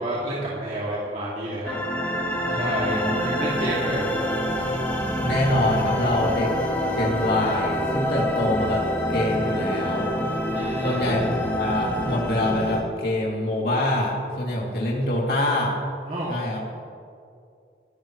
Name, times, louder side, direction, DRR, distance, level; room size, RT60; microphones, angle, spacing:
voice 1, 0.0-1.7 2.5-4.1 10.5-11.0 16.1-16.3, right 1 dB, 40° right, -7 dB, 2.5 m, -29 dB
sound 1, 1.7-12.8, left 1 dB, 10° left, 1.6 m, -26 dB
voice 2, 2.5-2.8 5.2-6.5 7.0-10.1 10.8-15.8 16.3-16.6, left 1 dB, 55° left, -4 dB, 2.8 m, -25 dB
28.0 x 12.0 x 3.2 m, 2.4 s
head